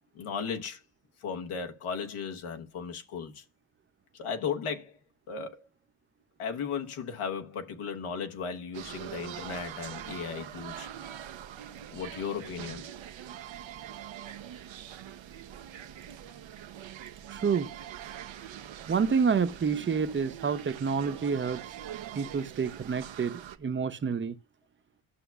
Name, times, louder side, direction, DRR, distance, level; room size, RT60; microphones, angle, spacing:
voice 1, 0.1-0.8 1.2-3.4 4.1-5.0 5.3-5.7 6.4-10.9 11.9-12.8, left 6 dB, 90° left, 1.3 m, -36 dB
sound 1, 8.7-23.6, right 10 dB, 65° right, 0.8 m, -43 dB
voice 2, 17.3-17.7 18.9-21.6 22.2-24.4, right 6 dB, 25° right, 0.5 m, -28 dB
11.0 x 6.9 x 2.3 m
cardioid pair, 120°, 49 cm